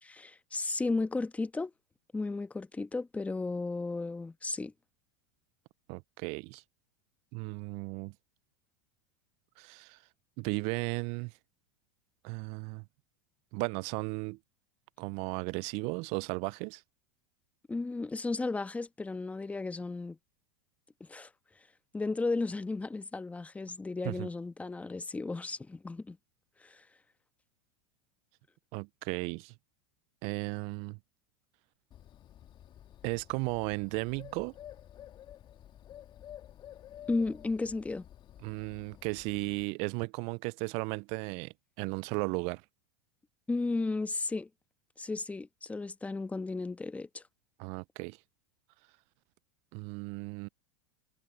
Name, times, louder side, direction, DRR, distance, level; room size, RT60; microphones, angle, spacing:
voice 1, 0.0-1.7 2.1-4.7 17.7-20.2 21.0-21.3 21.9-26.2 26.6-26.8 37.1-38.1 43.5-44.5 45.0-47.2, left 3 dB, 10° left, 1.2 m, -34 dB
voice 2, 5.9-6.6 7.3-8.1 9.6-10.0 10.4-11.3 12.2-12.9 13.5-14.4 15.0-16.8 24.0-24.3 28.7-29.5 30.2-31.0 33.0-34.5 38.4-42.6 47.6-48.2 49.7-50.5, right 30 dB, 50° right, 0.4 m, -35 dB
Bird, 31.9-39.7, left 11 dB, 35° left, 1.7 m, -51 dB
hypercardioid pair, 105°, 13 cm